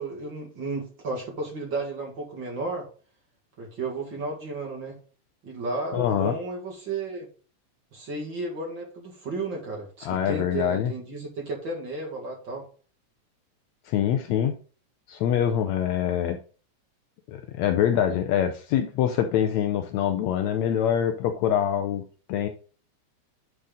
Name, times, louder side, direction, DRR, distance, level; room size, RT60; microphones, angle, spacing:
voice 1, 0.0-2.9 3.6-5.0 5.4-7.3 7.9-12.7, right 3 dB, 45° right, -1 dB, 2.1 m, -33 dB
voice 2, 5.9-6.3 10.1-10.9 13.9-14.6 15.1-16.4 17.3-22.0 22.3-22.5, left 9 dB, 75° left, 6 dB, 1.7 m, -24 dB
10.5 x 4.0 x 3.8 m, 0.39 s
omnidirectional pair, 3.6 m